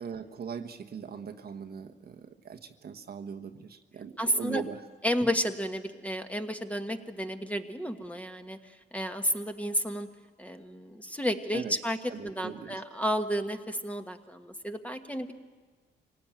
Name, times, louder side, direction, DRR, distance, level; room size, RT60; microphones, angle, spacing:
voice 1, 0.0-4.8 11.5-11.7 12.1-12.8, right 7 dB, 50° right, 5 dB, 1.2 m, -40 dB
voice 2, 4.2-4.6 5.0-10.1 10.4-12.0 12.2-15.3, equal, 5° left, 6 dB, 1.5 m, -32 dB
24.5 x 18.0 x 9.1 m, 1.5 s
cardioid pair, 90°, 20 cm